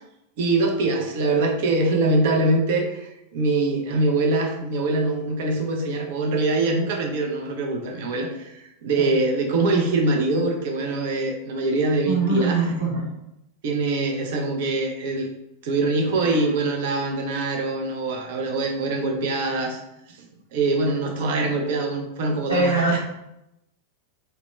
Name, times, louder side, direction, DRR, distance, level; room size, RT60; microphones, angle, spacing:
voice 1, 0.4-12.7 13.6-15.3 15.6-19.8 20.1-20.3 20.5-23.0, right 2 dB, 50° right, 2 dB, 0.6 m, -23 dB
voice 2, 12.0-13.1 16.2-16.4 22.5-23.0, right 3 dB, 80° right, -9 dB, 0.9 m, -23 dB
2.9 x 2.1 x 3.1 m, 0.86 s
figure-of-eight pair, 90°, 0 cm